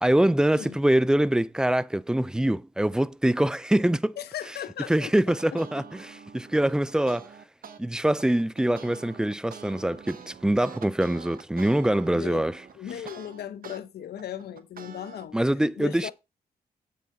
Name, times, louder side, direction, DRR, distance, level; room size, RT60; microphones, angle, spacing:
voice 1, 0.0-4.2 4.9-7.3 7.8-12.6 15.3-16.1, right 1 dB, 5° right, 0.3 m, -24 dB
voice 2, 4.2-5.1 12.1-12.5 12.8-16.1, left 10 dB, 85° left, 0.7 m, -37 dB
sound 1, 5.3-7.8 8.2-13.8 14.2-15.3, right 6 dB, 60° right, 1.0 m, -45 dB
7.5 x 5.6 x 4.1 m
cardioid pair, 75°, 16 cm